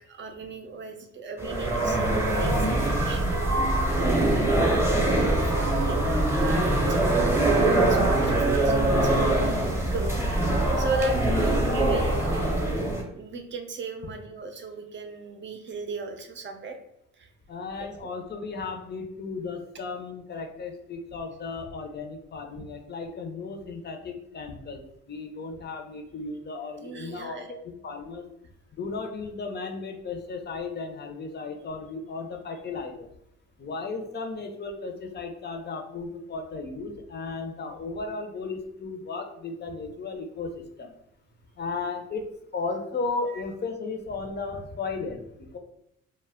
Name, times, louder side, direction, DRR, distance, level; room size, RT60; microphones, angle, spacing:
voice 1, 0.1-2.1 2.4-4.7 5.2-9.6 9.9-12.9 13.1-16.8 17.2-17.3 18.0-18.1 26.8-27.5 43.3-43.4, right 3 dB, 40° right, 5 dB, 0.5 m, -37 dB
sound 1, 1.4-13.0, right 1 dB, 10° right, 0.8 m, -23 dB
voice 2, 17.5-24.8 25.1-28.3 28.8-33.1 33.6-40.9 41.6-45.6, left 4 dB, 35° left, 4 dB, 0.5 m, -35 dB
2.2 x 2.1 x 3.5 m, 0.80 s
cardioid pair, 90°, 30 cm